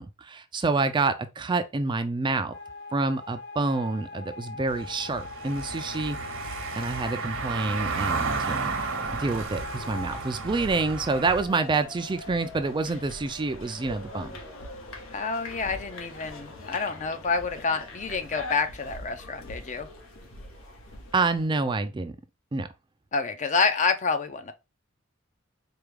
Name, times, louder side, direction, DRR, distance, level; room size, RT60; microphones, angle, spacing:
voice 1, 0.0-2.5 2.9-6.2 6.8-8.7 9.1-14.4 21.1-22.1 22.5-22.7, right 3 dB, 25° right, 0.4 m, -27 dB
sound 1, 2.5-21.1, left 3 dB, 55° left, 1.3 m, -43 dB
Car passing by / Engine, 4.7-11.4, right 4 dB, 65° right, 0.9 m, -33 dB
sound 2, 8.9-21.5, left 1 dB, 85° left, 1.1 m, -43 dB
voice 2, 15.1-19.9 23.1-24.5, left 4 dB, 35° left, 0.6 m, -28 dB
4.6 x 2.3 x 3.2 m
head